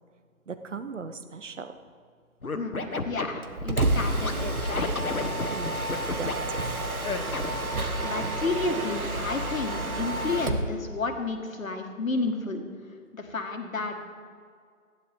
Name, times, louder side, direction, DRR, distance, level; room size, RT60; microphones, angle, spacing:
voice 1, 0.5-1.8 5.3-6.4 8.0-8.1, right 5 dB, 60° right, 10 dB, 1.0 m, -39 dB
Scratching (performance technique), 2.4-4.3 4.7-6.3 7.0-7.7, left 3 dB, 90° left, 1.3 m, -31 dB
voice 2, 2.5-4.9 8.0-12.6 13.1-14.0, left 3 dB, 70° left, 4 dB, 1.8 m, -31 dB
Mechanisms, 3.4-10.7, right 1 dB, 85° right, 1.4 m, -30 dB
15.0 x 10.0 x 3.5 m, 2.1 s
figure-of-eight pair, 150°, 42 cm